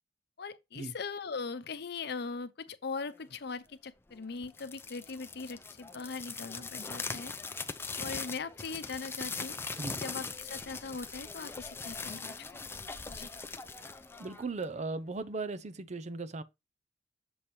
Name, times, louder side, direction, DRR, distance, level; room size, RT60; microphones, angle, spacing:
voice 1, 0.4-7.3 8.0-9.6 10.0-12.5 13.1-13.3, left 4 dB, 65° left, 0.7 m, -40 dB
sound 1, 4.4-14.8, left 4 dB, 15° left, 0.5 m, -41 dB
voice 2, 14.2-16.4, right 3 dB, 40° right, 0.6 m, -37 dB
7.0 x 3.4 x 4.2 m
head